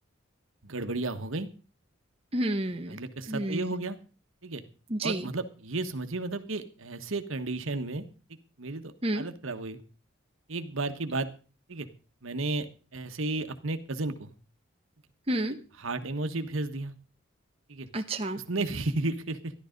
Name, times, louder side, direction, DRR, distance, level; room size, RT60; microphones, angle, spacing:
voice 1, 0.6-1.5 2.9-4.0 4.4-4.6 5.0-8.0 8.6-9.8 10.5-11.3 11.7-11.9 12.2-14.3 15.8-16.9 17.7-17.9 18.5-19.5, right 2 dB, 80° right, 8 dB, 1.4 m, -33 dB
voice 2, 2.3-3.0 3.3-3.7 4.9-5.3 9.0-9.3 15.3-15.6 17.9-18.4, right 1 dB, 30° right, 5 dB, 1.0 m, -30 dB
13.5 x 11.5 x 5.2 m, 0.37 s
head